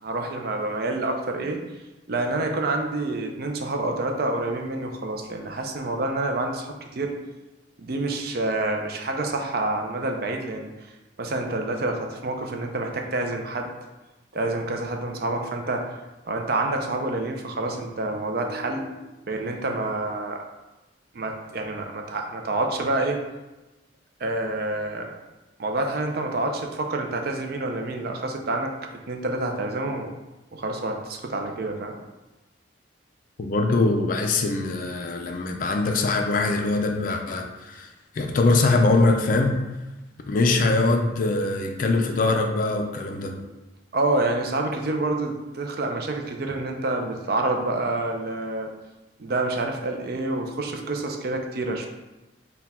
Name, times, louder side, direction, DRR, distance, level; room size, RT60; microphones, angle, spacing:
voice 1, 0.0-1.6 2.1-7.1 7.8-10.7 11.2-13.7 14.3-16.0 16.3-20.4 21.1-23.2 24.2-25.1 25.6-28.7 29.1-30.1 30.5-31.9 43.9-48.7 49.2-51.9, right 2 dB, 50° right, 3 dB, 0.5 m, -28 dB
voice 2, 33.4-37.9 38.1-39.7 40.3-43.5, left 3 dB, 45° left, 4 dB, 0.4 m, -22 dB
4.1 x 2.2 x 4.1 m, 1.0 s
head